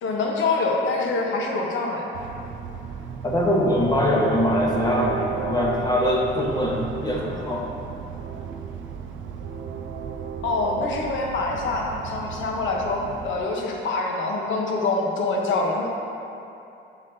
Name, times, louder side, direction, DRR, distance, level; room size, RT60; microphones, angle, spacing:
voice 1, 0.0-2.1 10.4-15.9, left 3 dB, 75° left, 0 dB, 1.0 m, -25 dB
Train, 2.1-13.4, right 6 dB, 75° right, 0.5 m, -34 dB
voice 2, 3.2-7.7, equal, 20° left, -3 dB, 1.0 m, -22 dB
7.3 x 6.2 x 2.7 m, 2.7 s
cardioid pair, 90°, 20 cm